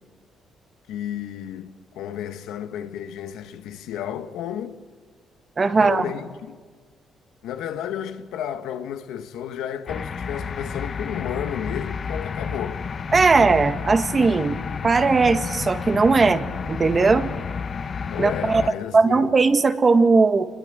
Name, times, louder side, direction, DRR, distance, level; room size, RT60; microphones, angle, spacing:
voice 1, 0.9-4.8 5.7-6.6 7.4-12.8 18.1-19.3, left 9 dB, 90° left, 1.4 m, -32 dB
voice 2, 5.6-6.0 13.1-14.6 14.8-17.3 18.2-18.6 18.9-20.5, right 4 dB, 35° right, 1.6 m, -18 dB
sound 1, 9.9-18.7, left 5 dB, 45° left, 1.0 m, -31 dB
27.0 x 21.0 x 9.1 m
cardioid pair, 90°, 0 cm